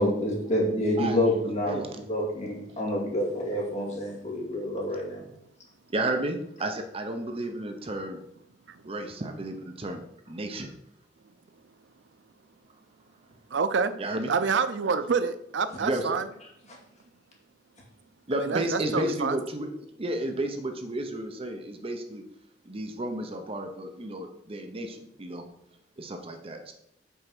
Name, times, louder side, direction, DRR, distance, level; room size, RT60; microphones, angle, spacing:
voice 1, 0.0-5.2, left 1 dB, 40° left, 2.3 m, -28 dB
voice 2, 5.9-8.2 8.8-10.0 10.3-10.7 14.0-14.3 15.8-16.2 18.3-19.7 20.0-22.2 22.6-25.5 26.0-26.7, right 1 dB, 30° right, 0.7 m, -32 dB
voice 3, 13.5-13.9 14.3-16.3 18.3-19.4, right 5 dB, 80° right, 0.5 m, -27 dB
5.5 x 4.7 x 6.0 m
head